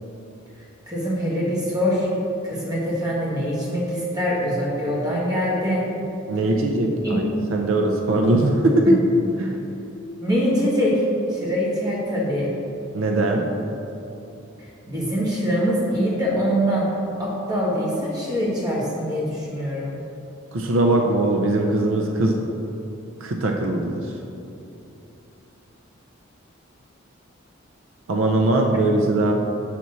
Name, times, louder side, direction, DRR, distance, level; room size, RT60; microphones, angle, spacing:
voice 1, 0.9-2.1 2.4-5.8 7.0-7.2 8.8-8.9 10.2-11.0 11.3-12.5 14.6-16.9 17.2-20.0, equal, 20° right, -6 dB, 1.4 m, -23 dB
voice 2, 6.3-7.3 7.5-9.0 9.4-9.6 12.9-13.5 20.5-22.4 23.2-24.1 28.1-29.3, right 2 dB, 70° right, 2 dB, 0.5 m, -20 dB
5.9 x 4.1 x 6.1 m, 2.8 s
head